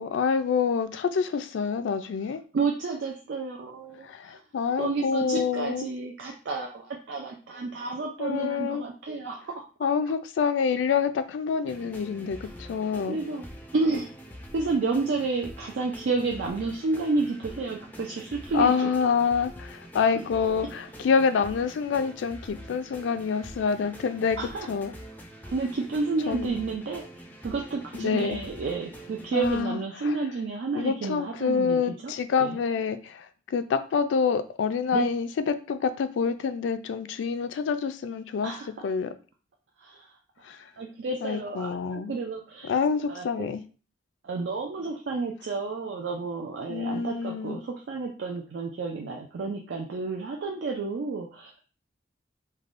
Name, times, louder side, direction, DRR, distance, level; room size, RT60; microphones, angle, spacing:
voice 1, 0.0-2.4 4.0-5.9 8.2-8.8 9.8-13.2 18.5-24.4 24.7-24.9 26.3-26.5 27.9-28.4 29.3-30.1 30.7-39.1 40.4-40.6 41.2-42.1 42.7-43.6 46.7-47.6, left 6 dB, 90° left, 0.3 m, -27 dB
voice 2, 2.5-4.4 4.8-9.5 13.0-13.5 13.7-14.1 14.5-18.7 24.4-24.7 25.5-32.1 32.4-32.6 34.9-35.1 38.4-38.7 39.8-40.1 40.4-42.7 43.1-43.3 44.2-51.5, right 3 dB, 70° right, 0.4 m, -31 dB
sound 1, 11.6-29.6, equal, 10° left, 0.4 m, -45 dB
3.3 x 2.2 x 2.5 m
head